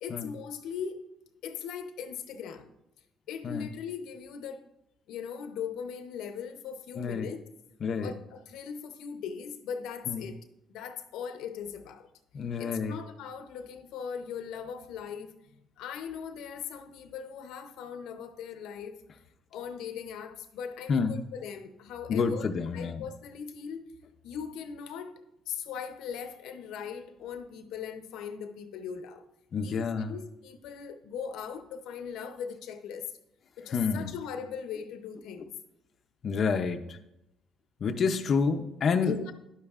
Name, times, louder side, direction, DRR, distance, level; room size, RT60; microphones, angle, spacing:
voice 1, 0.0-1.1 1.4-2.7 3.3-4.6 5.1-7.4 8.0-10.4 10.7-12.1 12.6-15.3 15.8-19.0 19.5-22.5 22.7-23.9 24.2-25.2 25.5-29.2 29.6-33.1 33.6-35.5 39.0-39.3, left 7 dB, 85° left, 0.7 m, -39 dB
voice 2, 7.0-7.3 7.8-8.1 10.1-10.3 12.3-13.0 20.9-21.2 22.1-23.0 29.5-30.1 33.7-34.1 36.2-37.0 37.8-39.1, left 5 dB, 40° left, 0.5 m, -28 dB
11.0 x 8.4 x 2.4 m
cardioid pair, 140°, 0 cm